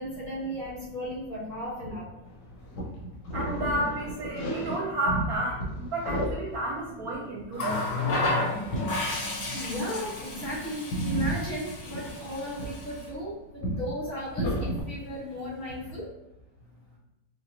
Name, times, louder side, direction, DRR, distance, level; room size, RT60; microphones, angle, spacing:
voice 1, 0.0-2.1 9.5-16.1, equal, 35° left, -10 dB, 1.8 m, -35 dB
sound 1, 2.3-5.4 5.6-6.5 6.9-7.4 8.7-9.1 9.7-9.9 10.2-10.6 10.9-13.2 13.6-13.9 14.4-14.8, equal, 75° left, 1.5 m, -32 dB
voice 2, 3.3-8.2, right 1 dB, 65° right, -2 dB, 1.0 m, -31 dB
Water tap faucet, 7.5-13.1 14.3-14.5, left 2 dB, 50° left, 1.0 m, -32 dB
5.5 x 2.3 x 2.6 m, 0.94 s
omnidirectional pair, 1.9 m